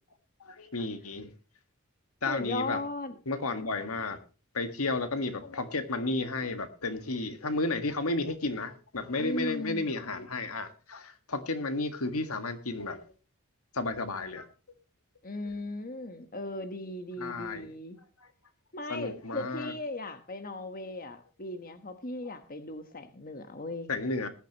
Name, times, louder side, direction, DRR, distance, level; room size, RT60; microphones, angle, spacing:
voice 1, 0.4-1.3 2.2-2.8 3.2-4.2 4.5-13.0 13.7-14.5 15.4-15.5 17.2-17.7 18.9-19.7 23.9-24.3, left 2 dB, 85° left, 1.7 m, -32 dB
voice 2, 2.3-3.2 9.2-9.8 15.2-18.0 18.7-23.9, left 2 dB, 40° left, 1.2 m, -37 dB
19.5 x 10.0 x 3.0 m
head